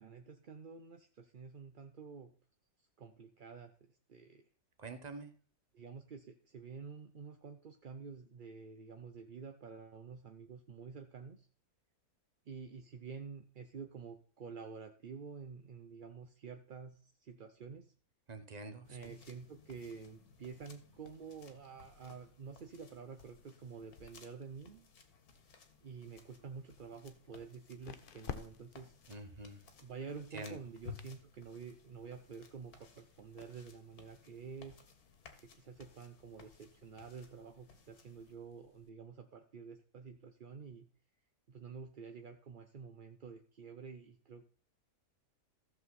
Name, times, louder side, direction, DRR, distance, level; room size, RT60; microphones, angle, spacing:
voice 1, 0.0-2.3 3.0-3.7 4.1-4.4 5.7-11.5 12.5-17.9 18.9-24.9 25.8-28.9 29.8-34.8 35.4-40.9 41.5-44.5, right 5 dB, 45° right, 6 dB, 0.7 m, -49 dB
voice 2, 4.8-5.3 18.3-19.2 29.1-29.6 30.3-30.6, right 3 dB, 30° right, 8 dB, 1.1 m, -46 dB
sound 1, 18.8-38.4, left 6 dB, 75° left, 1.9 m, -59 dB
sound 2, 26.5-38.9, left 7 dB, 45° left, 0.8 m, -55 dB
14.5 x 7.1 x 4.2 m, 0.41 s
omnidirectional pair, 1.6 m